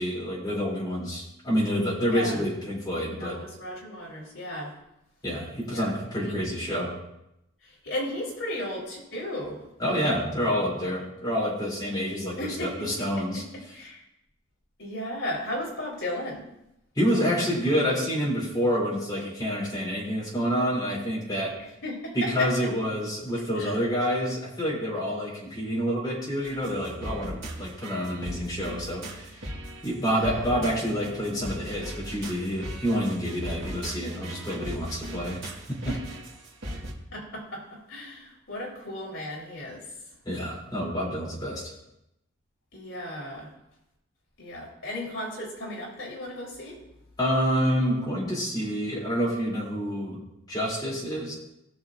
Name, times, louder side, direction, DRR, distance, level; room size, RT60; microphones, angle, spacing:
voice 1, 0.0-3.4 5.2-7.0 9.8-12.3 12.6-13.4 17.0-21.6 22.1-29.3 29.8-35.9 40.2-41.6 47.2-51.3, equal, 20° left, -5 dB, 3.1 m, -28 dB
voice 2, 2.1-2.4 3.2-4.7 5.7-5.9 6.2-6.3 7.6-9.6 12.4-14.0 14.8-16.4 21.8-22.7 23.6-23.8 30.0-30.6 35.9-36.0 37.1-39.8 42.7-43.5 44.4-46.8, left 1 dB, 65° left, -3 dB, 3.6 m, -35 dB
sound 1, 26.4-36.9, right 1 dB, 65° right, 1.9 m, -38 dB
17.5 x 6.5 x 2.6 m, 0.86 s
head